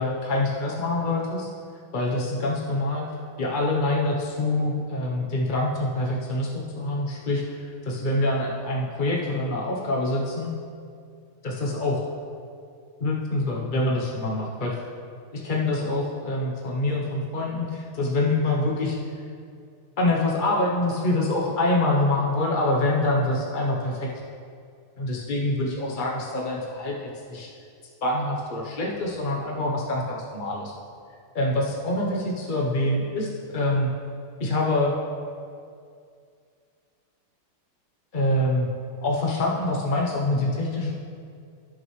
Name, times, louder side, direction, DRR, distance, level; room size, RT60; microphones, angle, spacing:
voice 1, 0.0-1.5 1.9-3.0 3.4-10.5 11.4-12.0 13.0-14.8 15.3-19.2 20.0-24.1 25.0-27.5 28.0-30.7 31.3-33.9 34.4-34.9 38.1-38.7 39.0-40.9, left 2 dB, 60° left, -3 dB, 0.5 m, -25 dB
16.5 x 6.0 x 3.2 m, 2.3 s
omnidirectional pair, 2.4 m